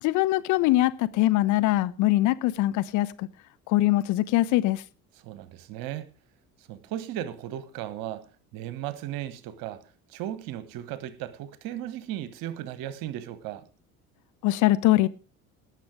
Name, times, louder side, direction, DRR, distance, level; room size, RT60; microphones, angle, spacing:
voice 1, 0.0-3.3 3.7-4.8 14.4-15.1, left 16 dB, 45° left, 0.7 m, -22 dB
voice 2, 5.2-6.1 6.7-8.2 8.5-9.8 10.1-13.7, right 12 dB, 50° right, 1.4 m, -36 dB
18.5 x 6.7 x 4.9 m
figure-of-eight pair, 60°, 43 cm